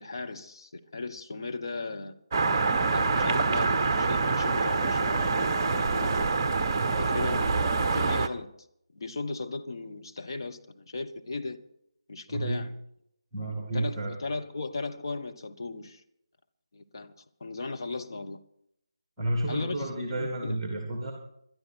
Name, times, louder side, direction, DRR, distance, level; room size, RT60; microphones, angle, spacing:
voice 1, 0.0-2.1 2.9-6.3 7.0-8.5 8.9-11.6 12.1-12.7 13.7-16.0 16.7-17.1 17.4-18.4 19.5-19.9 20.2-20.5, left 3 dB, 50° left, 1.3 m, -36 dB
sound 1, 2.3-8.3, right 4 dB, 25° right, 0.9 m, -26 dB
voice 2, 12.3-12.6 13.3-14.1 19.2-21.1, right 1 dB, 10° right, 2.5 m, -31 dB
22.0 x 12.5 x 4.5 m
figure-of-eight pair, 155°, 3 cm